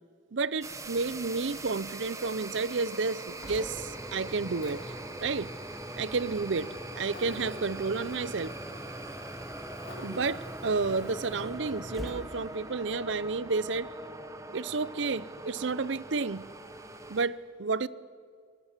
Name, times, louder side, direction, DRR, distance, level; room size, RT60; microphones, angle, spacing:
voice 1, 0.3-4.9 5.2-5.5 6.0-8.5 10.0-13.9 14.5-16.4 17.1-17.9, right 4 dB, 70° right, 0.6 m, -31 dB
sound 1, 0.6-17.3, right 2 dB, 15° right, 1.2 m, -43 dB
Buzz, 0.7-11.4, left 1 dB, 50° left, 6.8 m, -53 dB
Engine, 3.3-14.2, equal, ahead, 0.8 m, -45 dB
23.5 x 20.5 x 7.4 m
head